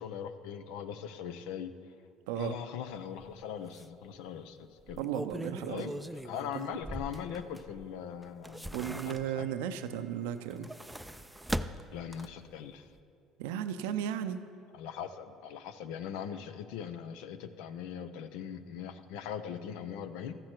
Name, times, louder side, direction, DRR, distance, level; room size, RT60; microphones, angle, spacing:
voice 1, 0.0-1.7 2.4-5.0 5.7-9.5 11.9-12.9 14.7-20.4, left 8 dB, 75° left, 11 dB, 0.6 m, -41 dB
sound 1, 3.2-3.3 3.7-3.8 4.8-7.8 8.2-9.6 10.4-12.5 12.9-13.0, right 1 dB, 5° right, 0.4 m, -40 dB
voice 2, 5.0-5.9 6.5-6.6 8.7-10.7 13.4-14.4, right 9 dB, 80° right, 10 dB, 0.5 m, -35 dB
13.5 x 7.6 x 4.5 m, 2.3 s
hypercardioid pair, 75°, 0 cm